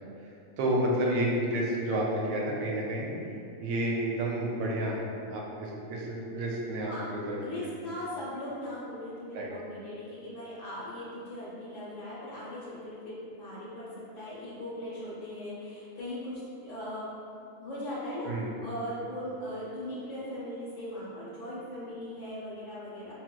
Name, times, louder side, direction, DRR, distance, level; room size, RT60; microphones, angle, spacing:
voice 1, 0.6-3.1 3.6-5.0 5.3-7.7 9.3-9.5 18.2-18.5, right 1 dB, 90° right, -3 dB, 1.0 m, -30 dB
voice 2, 7.4-17.1 17.6-18.3 18.6-23.1, left 1 dB, 70° left, -7 dB, 1.0 m, -39 dB
4.2 x 2.1 x 2.2 m, 2.6 s
omnidirectional pair, 1.4 m